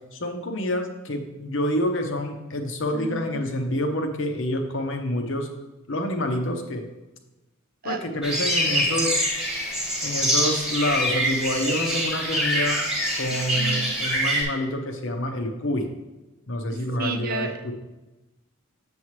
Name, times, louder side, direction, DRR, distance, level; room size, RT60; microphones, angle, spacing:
voice 1, 0.1-5.5 5.9-6.8 7.8-9.4 10.0-12.8 13.2-15.9 16.5-17.7, left 1 dB, 60° left, 4 dB, 0.9 m, -27 dB
voice 2, 2.9-3.4 7.8-8.0 13.6-13.9 17.0-17.6, right 4 dB, 45° right, 6 dB, 0.5 m, -31 dB
sound 1, 8.2-14.4, equal, 5° right, 1.4 m, -25 dB
7.2 x 7.0 x 3.2 m, 1.1 s
head